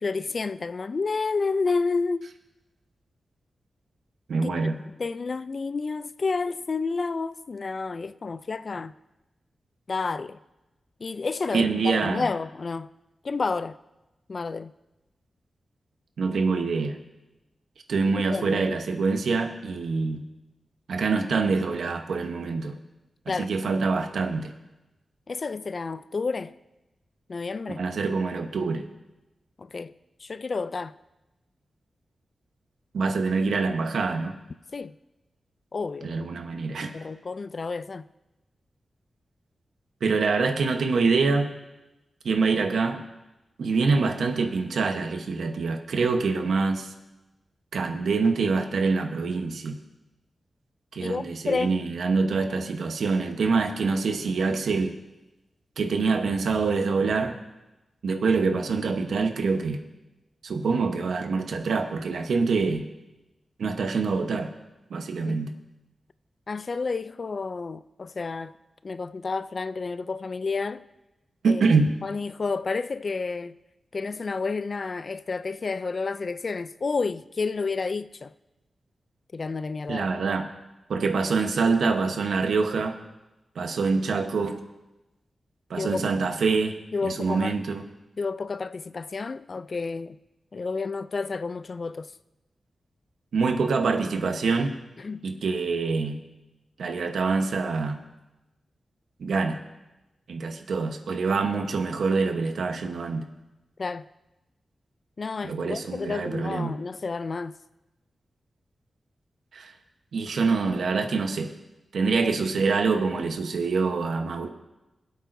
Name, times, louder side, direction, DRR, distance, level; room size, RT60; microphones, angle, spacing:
voice 1, 0.0-2.3 4.4-4.5 5.0-8.9 9.9-10.4 11.0-12.9 13.2-13.8 14.3-14.7 18.3-18.6 23.3-23.5 25.3-26.5 27.3-27.8 29.6-29.9 30.2-30.9 34.7-35.0 35.7-36.1 36.9-38.1 51.0-51.8 65.3-65.4 66.5-68.5 68.8-70.8 71.5-71.6 72.0-73.6 73.9-78.3 79.3-80.1 85.8-86.0 86.9-87.6 88.2-90.2 90.5-92.1 95.0-95.3 103.8-104.1 105.2-107.5 112.2-112.3, left 4 dB, 40° left, 0.3 m, -30 dB
voice 2, 4.3-4.8 11.5-12.2 16.2-17.0 17.9-20.2 20.9-22.8 23.3-24.5 27.8-28.9 32.9-34.4 36.0-36.9 40.0-41.5 42.2-43.0 43.6-46.9 47.7-49.8 50.9-54.9 55.8-57.4 58.0-59.8 60.4-62.9 63.6-64.5 64.9-65.5 71.4-71.9 79.9-80.5 80.9-83.0 83.5-84.6 85.7-86.8 87.0-87.8 93.3-94.7 95.2-96.2 96.8-98.0 99.2-99.6 100.3-103.3 105.4-106.8 109.5-109.7 110.1-111.5 111.9-114.5, right 4 dB, 90° right, 1.0 m, -25 dB
24.0 x 8.1 x 2.6 m
wide cardioid pair, 150°, 0 cm